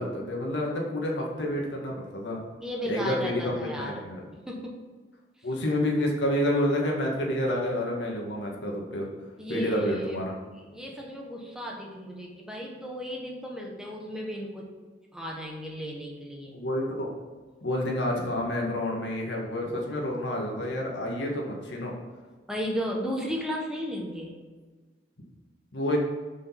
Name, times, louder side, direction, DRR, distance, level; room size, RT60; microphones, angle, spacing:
voice 1, 0.0-2.4 2.8-4.2 5.4-9.1 9.5-10.3 16.5-17.1 17.6-21.9 25.7-26.0, left 1 dB, 85° left, -1 dB, 1.7 m, -29 dB
voice 2, 2.6-4.0 4.3-4.8 9.4-10.2 10.5-14.7 15.1-16.6 22.5-24.4, equal, 5° right, -1 dB, 1.1 m, -34 dB
6.5 x 5.1 x 5.7 m, 1.4 s
head